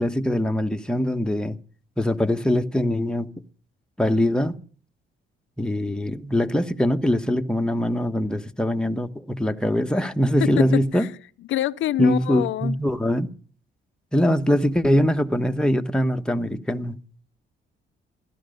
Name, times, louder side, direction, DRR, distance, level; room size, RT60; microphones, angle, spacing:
voice 1, 0.0-1.6 2.0-3.3 4.0-4.6 5.6-11.1 12.0-13.3 14.1-17.0, equal, 5° left, 1.3 m, -22 dB
voice 2, 10.4-11.1 11.5-12.8, left 13 dB, 75° left, 0.6 m, -26 dB
15.5 x 13.0 x 5.3 m
cardioid pair, 90°, 20 cm